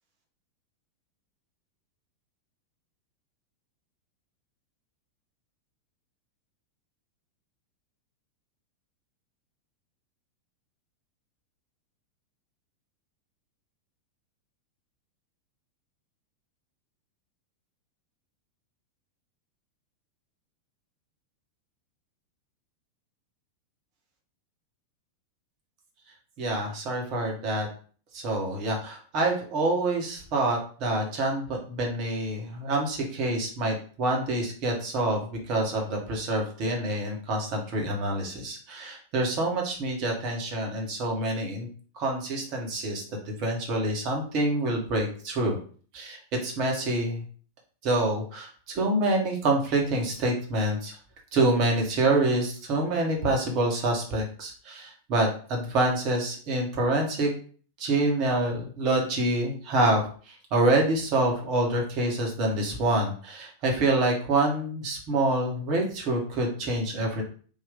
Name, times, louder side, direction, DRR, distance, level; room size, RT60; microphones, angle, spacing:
voice 1, 26.4-27.7 28.1-41.7 41.9-45.6 45.9-47.2 47.8-51.0 51.3-57.3 57.8-67.2, right 2 dB, 40° right, 1 dB, 1.3 m, -27 dB
3.6 x 2.6 x 3.6 m, 0.43 s
figure-of-eight pair, 90°, 0 cm